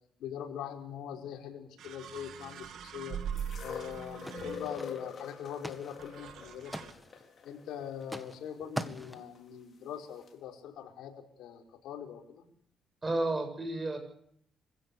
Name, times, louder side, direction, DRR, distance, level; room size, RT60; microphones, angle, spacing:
voice 1, 0.2-3.2 3.6-7.0 7.4-12.4, left 9 dB, 85° left, 1 dB, 4.9 m, -42 dB
sound 1, 1.1-1.2 1.8-5.0 6.0-6.9, right 8 dB, 75° right, 2.2 m, -42 dB
sound 2, 3.4-9.4 10.3-10.4, left 6 dB, 50° left, 5.0 m, -45 dB
sound 3, 4.3-5.2 5.5-6.0 6.3-7.2 8.0-8.4 8.8-9.3, equal, 5° right, 1.9 m, -41 dB
voice 2, 13.0-14.0, right 2 dB, 25° right, 6 dB, 7.4 m, -31 dB
26.5 x 16.5 x 8.5 m, 0.70 s
cardioid pair, 90°, 0 cm